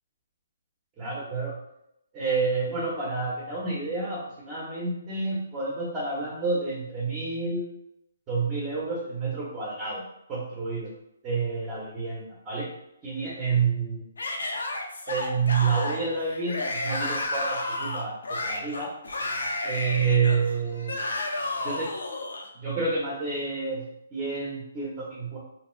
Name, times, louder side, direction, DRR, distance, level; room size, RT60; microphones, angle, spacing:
voice 1, 1.0-1.5 2.1-7.7 8.3-10.0 10.3-10.9 11.2-12.7 13.0-14.0 15.1-18.9 19.6-21.0 21.6-21.9 22.5-25.4, right 4 dB, 20° right, -5 dB, 0.8 m, -29 dB
Yell / Screaming, 14.2-22.5, left 2 dB, 85° left, 0.6 m, -32 dB
2.8 x 2.3 x 3.1 m, 0.80 s
hypercardioid pair, 150°, 0 cm